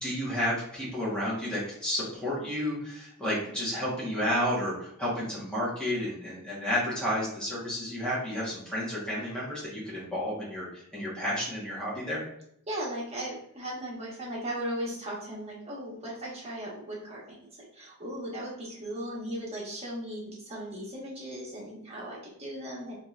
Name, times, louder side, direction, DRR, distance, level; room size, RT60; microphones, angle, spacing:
voice 1, 0.0-12.2, equal, 5° left, -8 dB, 1.2 m, -31 dB
voice 2, 12.7-22.9, equal, 30° right, -5 dB, 1.2 m, -37 dB
3.8 x 2.8 x 2.4 m, 0.71 s
head